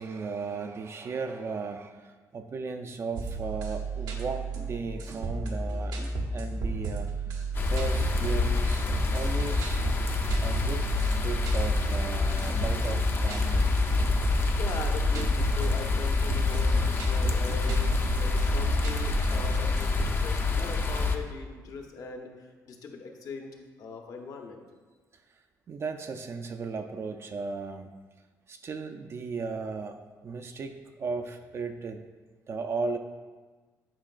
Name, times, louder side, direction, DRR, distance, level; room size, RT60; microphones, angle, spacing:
voice 1, 0.0-7.1 7.6-9.8 10.4-13.7 15.2-15.4 17.5-17.6 25.7-27.9 28.5-32.0 32.5-33.0, right 4 dB, 40° right, 5 dB, 0.4 m, -36 dB
sound 1, 3.2-20.1, right 3 dB, 90° right, 0.9 m, -33 dB
sound 2, 7.5-21.2, left 4 dB, 35° left, 0.5 m, -27 dB
voice 2, 14.3-23.5 23.8-24.6, left 4 dB, 60° left, 3 dB, 0.9 m, -40 dB
8.8 x 5.2 x 2.4 m, 1.3 s
cardioid pair, 105°, 7 cm